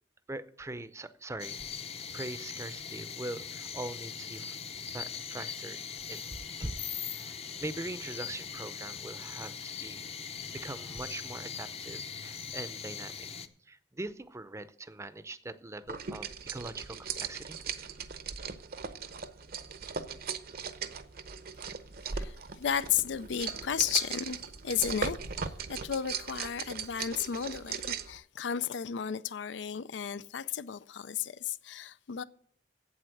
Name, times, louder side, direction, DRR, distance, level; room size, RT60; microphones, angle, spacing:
voice 1, 0.3-1.6 1.9-4.6 4.9-5.8 6.1-6.3 6.6-6.7 7.1-10.1 10.5-13.3 13.7-17.6, right 2 dB, 15° right, 0.6 m, -42 dB
sound 1, 1.4-13.5, left 7 dB, 35° left, 0.7 m, -41 dB
sound 2, 15.9-28.2, right 6 dB, 60° right, 0.7 m, -38 dB
voice 2, 22.0-24.4 24.6-32.2, left 8 dB, 85° left, 0.5 m, -34 dB
8.4 x 8.0 x 7.7 m
head